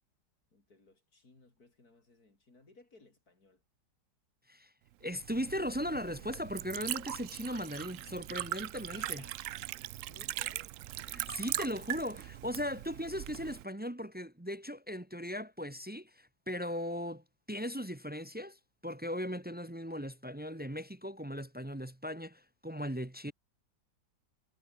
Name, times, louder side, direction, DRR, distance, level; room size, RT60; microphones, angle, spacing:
voice 1, 0.5-3.6 8.9-9.5 9.9-10.7, left 3 dB, 55° left, 5.6 m, -60 dB
voice 2, 5.0-9.2 11.1-23.3, equal, 10° right, 0.5 m, -38 dB
Liquid, 5.1-13.6, right 14 dB, 85° right, 0.6 m, -40 dB
omnidirectional pair, 1.9 m